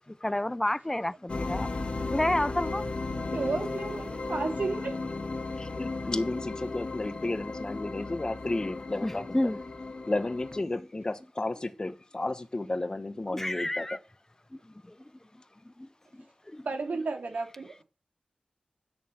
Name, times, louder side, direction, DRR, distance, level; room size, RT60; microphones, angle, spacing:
voice 1, 0.1-1.7 2.1-3.2 9.0-9.6 13.3-14.0 14.5-15.0 15.6-16.7, left 1 dB, 15° left, 0.5 m, -31 dB
sound 1, 1.3-10.6, left 3 dB, 50° left, 2.1 m, -35 dB
voice 2, 3.3-5.0 16.6-17.7, right 3 dB, 85° right, 2.6 m, -32 dB
voice 3, 5.6-9.4 10.1-13.9, left 2 dB, 30° left, 1.2 m, -33 dB
10.5 x 6.6 x 7.6 m
wide cardioid pair, 110°, 3 cm